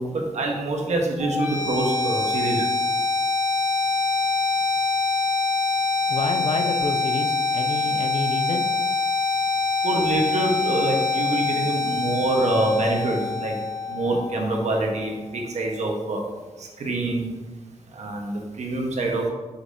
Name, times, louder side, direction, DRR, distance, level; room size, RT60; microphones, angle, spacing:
voice 1, 0.0-2.7 9.8-13.5 13.9-16.2 16.6-17.3 17.9-19.3, right 2 dB, 70° right, 0 dB, 1.2 m, -25 dB
sound 1, 1.2-15.2, left 4 dB, 15° right, 1.5 m, -25 dB
voice 2, 6.1-8.7, left 3 dB, 55° left, 5 dB, 0.6 m, -28 dB
6.5 x 5.7 x 2.7 m, 1.3 s
wide cardioid pair, 140°, 12 cm